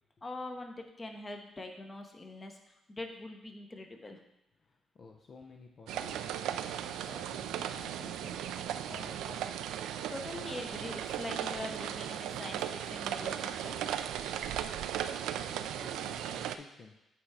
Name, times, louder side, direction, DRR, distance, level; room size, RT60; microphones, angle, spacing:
voice 1, 0.2-4.2 10.1-13.9, left 2 dB, 25° left, 4 dB, 1.0 m, -43 dB
voice 2, 4.6-9.6 9.9-10.0 15.4-17.1, left 4 dB, 50° left, 3 dB, 0.6 m, -53 dB
sound 1, 5.9-16.6, right 10 dB, 90° right, 0.3 m, -37 dB
8.3 x 3.4 x 4.9 m, 0.86 s
cardioid pair, 90°, 0 cm